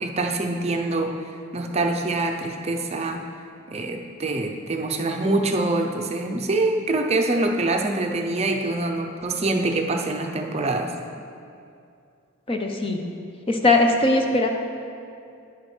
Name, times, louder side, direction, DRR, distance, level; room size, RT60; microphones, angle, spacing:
voice 1, 0.0-3.3 3.7-11.0, right 2 dB, 30° right, 3 dB, 0.6 m, -25 dB
voice 2, 12.5-13.0 13.5-14.5, left 2 dB, 25° left, 3 dB, 0.7 m, -20 dB
10.5 x 10.0 x 3.3 m, 2.5 s
head